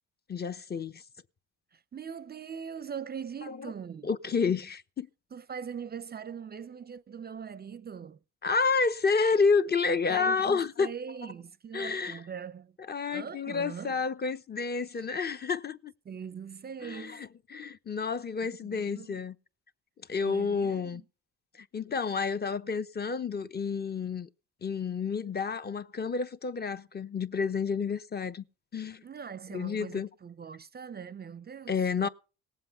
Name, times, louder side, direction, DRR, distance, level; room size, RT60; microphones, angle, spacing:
voice 1, 0.3-1.0 3.5-3.6 4.0-5.1 8.4-10.9 11.7-12.2 12.9-15.9 16.8-19.3 20.1-21.0 21.6-24.3 24.6-28.4 28.7-29.0 29.5-30.1 31.7-32.1, left 5 dB, 30° left, 0.9 m, -30 dB
voice 2, 1.7-4.1 5.3-8.2 10.1-12.8 13.1-14.0 14.9-15.0 16.1-17.2 18.4-19.2 20.2-21.0 29.0-32.1, right 7 dB, 30° right, 0.5 m, -41 dB
18.0 x 7.6 x 5.7 m
supercardioid pair, 80°, 33 cm